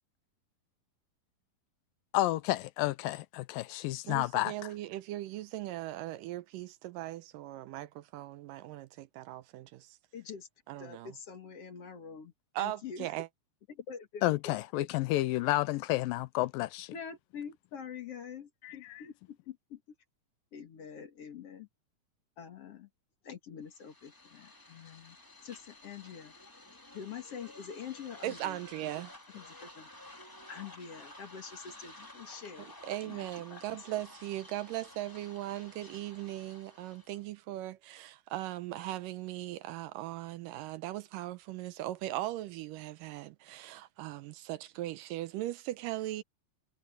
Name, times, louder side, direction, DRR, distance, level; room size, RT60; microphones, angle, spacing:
voice 1, 2.1-4.5 14.2-16.9 18.6-19.0, left 17 dB, 80° left, 2.3 m, -31 dB
voice 2, 4.1-10.0 10.7-11.1 12.6-13.3 28.2-29.1 32.6-46.2, right 15 dB, 80° right, 2.1 m, -39 dB
voice 3, 10.1-10.5 10.8-13.1 13.7-14.9 16.9-19.8 20.5-21.7 22.4-22.9 23.2-25.2 25.4-26.3 26.9-28.6 29.3-29.9 30.5-32.7 33.0-33.2 33.5-33.8, left 7 dB, 50° left, 2.4 m, -45 dB
sound 1, 23.7-37.3, left 1 dB, 10° left, 1.6 m, -53 dB
omnidirectional pair, 4.1 m